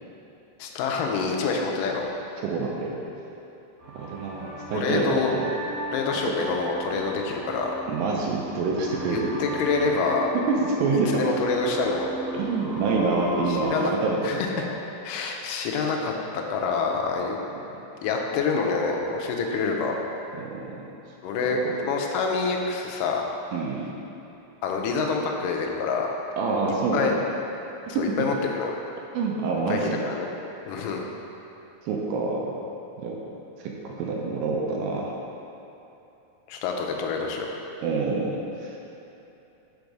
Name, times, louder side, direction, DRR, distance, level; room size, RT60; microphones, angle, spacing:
voice 1, 0.6-2.1 4.7-5.3 5.9-7.7 9.1-10.3 11.1-12.1 13.5-13.9 14.2-14.5 15.0-17.4 18.0-20.0 21.2-21.6 21.9-23.2 24.6-26.1 26.9-27.2 28.0-28.7 29.7-30.3 30.7-31.0 36.5-37.5, left 4 dB, 80° left, 1 dB, 2.0 m, -27 dB
voice 2, 2.4-3.0 3.9-5.6 6.1-6.3 7.9-9.3 10.3-11.4 12.3-14.4 20.4-20.8 21.4-21.7 23.5-23.9 26.4-27.2 27.9-28.2 29.1-30.0 31.8-32.6 33.0-33.2 33.6-35.1 37.8-38.8, right 4 dB, 80° right, -2 dB, 2.3 m, -27 dB
sound 1, 3.8-13.7, equal, 55° right, 1.9 m, -35 dB
5.2 x 5.1 x 4.7 m, 2.9 s
omnidirectional pair, 4.2 m